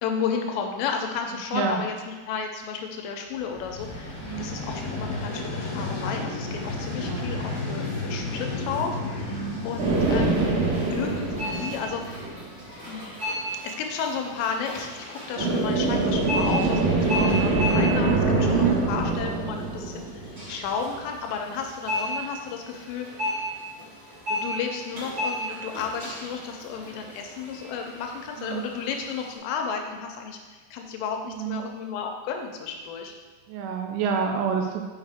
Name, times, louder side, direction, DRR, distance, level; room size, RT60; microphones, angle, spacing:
voice 1, 0.0-10.6 10.9-12.3 12.9-13.3 13.6-23.1 24.3-33.2, left 6 dB, 80° left, 3 dB, 3.2 m, -33 dB
Vehicle, 3.4-12.3, left 2 dB, 45° left, 2.6 m, -33 dB
voice 2, 9.2-9.6 17.2-17.4 18.5-18.8 28.4-28.7 31.3-31.7 33.5-34.8, right 7 dB, 80° right, 3 dB, 3.0 m, -28 dB
sound 1, 9.8-12.6 15.4-20.8, right 3 dB, 65° right, 3.5 m, -24 dB
sound 2, 9.9-29.4, equal, 35° right, 1.8 m, -35 dB
6.5 x 6.5 x 3.5 m, 1.3 s
omnidirectional pair, 5.8 m